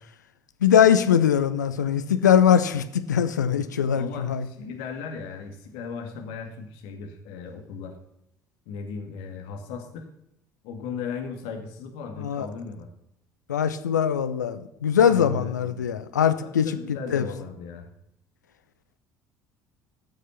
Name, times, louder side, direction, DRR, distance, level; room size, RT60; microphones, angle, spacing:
voice 1, 0.6-4.5 12.2-12.5 13.5-17.2, left 8 dB, 80° left, 10 dB, 0.8 m, -21 dB
voice 2, 3.9-7.9 8.7-10.1 10.6-12.9 15.0-15.9 16.4-17.9, left 5 dB, 60° left, 3 dB, 2.2 m, -37 dB
17.0 x 6.5 x 5.8 m, 0.78 s
figure-of-eight pair, 55°, 10 cm